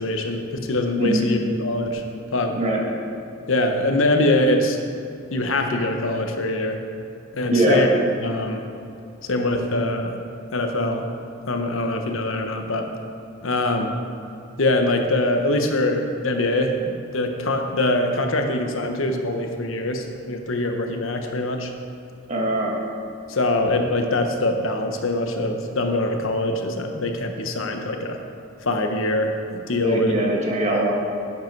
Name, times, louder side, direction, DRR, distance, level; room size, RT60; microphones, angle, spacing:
voice 1, 0.0-2.0 2.3-2.6 3.5-4.8 5.3-6.8 7.3-7.9 8.2-8.6 9.3-10.1 10.5-11.1 11.5-12.9 13.4-13.9 14.6-21.7 23.3-28.2 28.6-30.1, left 2 dB, 75° left, 4 dB, 1.0 m, -23 dB
voice 2, 7.5-7.8 22.3-22.8 29.8-31.0, right 2 dB, 35° right, -1 dB, 1.5 m, -21 dB
11.0 x 7.8 x 4.6 m, 2.6 s
head